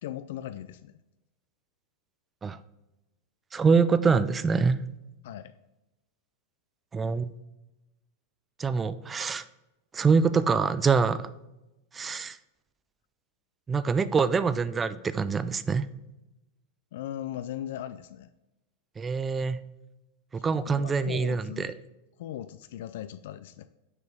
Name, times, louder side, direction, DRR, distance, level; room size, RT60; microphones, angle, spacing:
voice 1, 0.0-1.0 5.2-5.5 16.9-18.3 20.7-21.8 22.2-23.7, left 11 dB, 70° left, 12 dB, 0.3 m, -38 dB
voice 2, 3.5-4.9 6.9-7.3 8.6-9.4 9.9-11.3 11.9-12.4 13.7-15.9 19.0-19.6 20.3-21.7, right 5 dB, 15° right, 14 dB, 0.3 m, -25 dB
6.5 x 4.9 x 3.6 m, 0.96 s
supercardioid pair, 135°, 0 cm